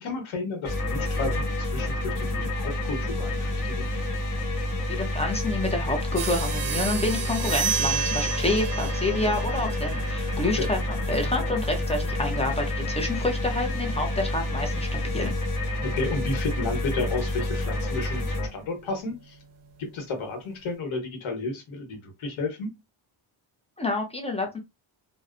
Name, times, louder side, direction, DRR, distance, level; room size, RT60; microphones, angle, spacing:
voice 1, 0.0-3.9 10.6-10.7 15.8-19.4 19.8-22.7, left 3 dB, 75° left, 1.0 m, -32 dB
sound 1, 0.6-18.5, left 1 dB, 40° left, 0.7 m, -29 dB
voice 2, 4.9-15.3 23.8-24.6, left 2 dB, 15° left, 0.3 m, -28 dB
sound 2, 6.2-16.3, right 9 dB, 85° right, 0.6 m, -34 dB
2.6 x 2.1 x 2.4 m
wide cardioid pair, 165°, 48 cm